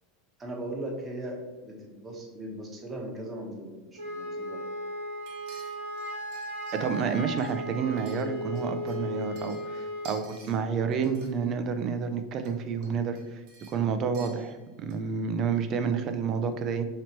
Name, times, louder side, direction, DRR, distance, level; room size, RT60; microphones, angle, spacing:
voice 1, 0.4-4.6, right 1 dB, 20° right, -1 dB, 1.0 m, -38 dB
Wind instrument woodwind instrument, 4.0-10.2, equal, 85° right, 1.1 m, -36 dB
sound 1, 5.3-7.0 7.4-8.6 8.9-10.6 10.9-11.5 12.4-12.5 12.8-15.1 15.4-15.5, right 4 dB, 60° right, 1.0 m, -52 dB
voice 2, 6.7-13.4 13.7-16.9, right 6 dB, 45° right, 8 dB, 0.4 m, -29 dB
2.9 x 2.9 x 4.4 m, 1.2 s
hypercardioid pair, 100°, 0 cm